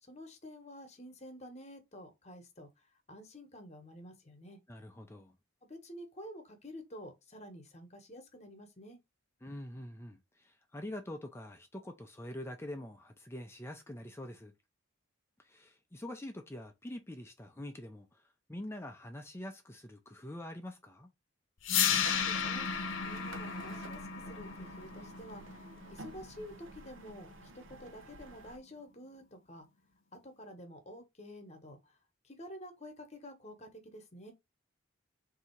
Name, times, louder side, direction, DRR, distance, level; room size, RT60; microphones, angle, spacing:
voice 1, 0.0-4.6 5.7-9.0 22.1-22.7 23.0-25.6 25.9-29.7 30.1-32.0 32.2-34.3, equal, 35° left, 1.1 m, -50 dB
voice 2, 4.7-5.3 9.4-14.5 15.4-18.2 18.5-21.1, left 1 dB, 15° left, 0.5 m, -45 dB
sound 1, 21.6-27.7, left 7 dB, 70° left, 0.7 m, -34 dB
sound 2, 21.8-28.6, right 3 dB, 70° right, 0.7 m, -51 dB
3.7 x 2.8 x 4.4 m
head